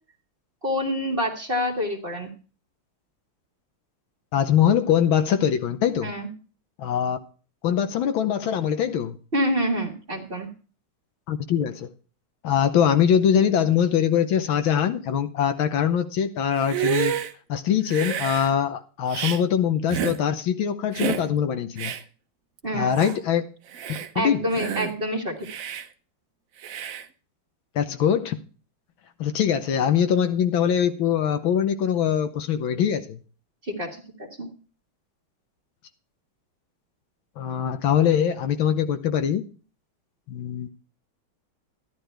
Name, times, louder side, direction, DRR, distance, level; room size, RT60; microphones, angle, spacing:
voice 1, 0.6-2.3 6.0-6.3 9.3-10.5 22.6-23.0 24.1-25.5 33.6-34.0 34.4-34.5, equal, 25° right, 1.8 m, -27 dB
voice 2, 4.3-6.1 6.8-7.2 7.6-9.1 11.3-11.9 12.4-17.2 17.5-21.9 22.7-23.5 23.9-24.4 27.8-28.4 29.2-33.2 37.4-39.4 40.3-40.7, left 9 dB, 75° left, 1.6 m, -22 dB
Hiss, 16.6-17.3 17.9-18.5 19.1-19.4 19.9-20.2 20.9-21.3 21.8-22.0 22.6-22.7 22.9-23.2 23.7-24.1 24.5-24.9 25.4-25.9 26.6-27.0, right 8 dB, 65° right, 0.8 m, -29 dB
12.5 x 11.0 x 3.4 m
omnidirectional pair, 2.3 m